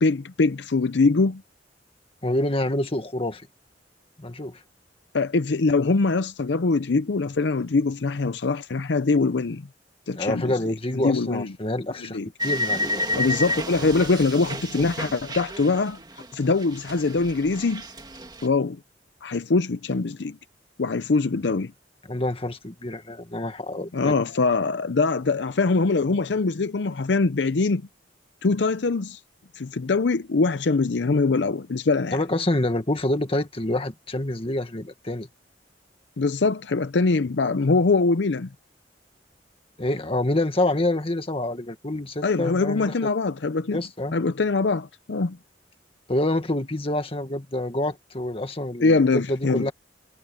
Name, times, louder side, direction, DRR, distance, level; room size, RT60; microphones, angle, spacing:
voice 1, 0.0-1.4 5.1-9.6 10.1-10.5 10.9-11.5 12.1-12.3 13.2-16.0 16.3-17.8 18.4-18.8 19.2-20.4 20.8-21.7 23.9-27.8 28.4-29.2 29.5-32.2 36.2-38.5 42.2-43.8 44.1-45.4 48.8-49.7, left 3 dB, 70° left, 0.6 m, -23 dB
voice 2, 2.2-3.5 4.2-4.6 10.1-13.0 22.1-24.2 32.1-35.3 39.8-42.9 43.7-44.1 46.1-49.7, left 1 dB, 30° left, 1.8 m, -27 dB
sound 1, 12.4-16.3 16.6-18.5, equal, 25° right, 1.9 m, -30 dB
head